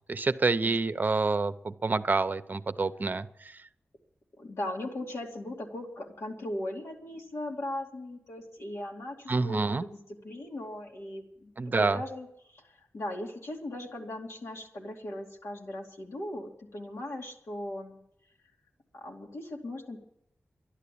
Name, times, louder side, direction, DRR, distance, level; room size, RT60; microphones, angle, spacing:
voice 1, 0.1-3.6 9.3-9.8 11.6-12.0, right 3 dB, 45° right, 12 dB, 0.7 m, -28 dB
voice 2, 4.4-10.0 10.2-18.0 18.9-20.0, left 1 dB, 80° left, 0 dB, 2.6 m, -38 dB
12.5 x 11.5 x 8.5 m, 0.78 s
wide cardioid pair, 95°, 4 cm